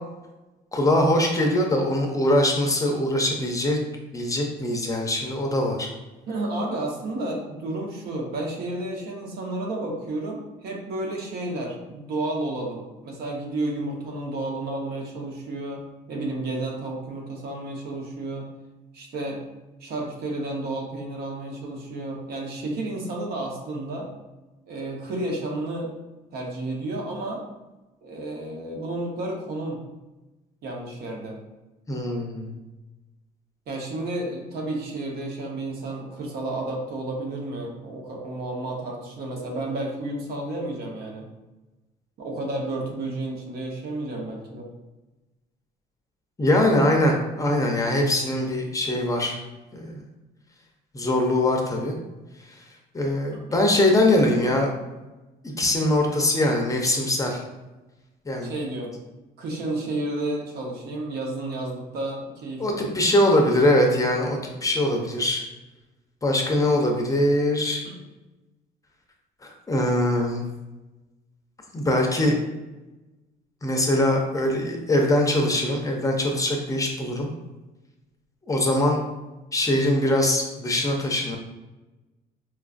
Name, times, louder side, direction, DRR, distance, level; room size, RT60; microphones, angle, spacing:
voice 1, 0.7-3.8 4.1-5.9 31.9-32.5 46.4-49.4 49.7-50.0 50.9-52.0 52.5-52.6 52.9-54.7 55.4-57.4 58.3-58.5 62.6-65.4 66.2-67.8 69.4-70.4 71.7-72.4 73.6-77.3 78.5-79.0 79.5-81.4, left 1 dB, 20° left, 1 dB, 0.5 m, -22 dB
voice 2, 6.3-18.5 18.9-19.4 19.8-24.1 24.7-25.9 26.3-27.4 28.0-29.8 30.6-31.4 33.7-41.3 42.2-44.7 53.5-53.7 58.4-58.9 59.4-63.0 67.8-67.9, right 2 dB, 70° right, 0 dB, 0.9 m, -31 dB
4.4 x 2.3 x 2.4 m, 1.1 s
cardioid pair, 110°, 17 cm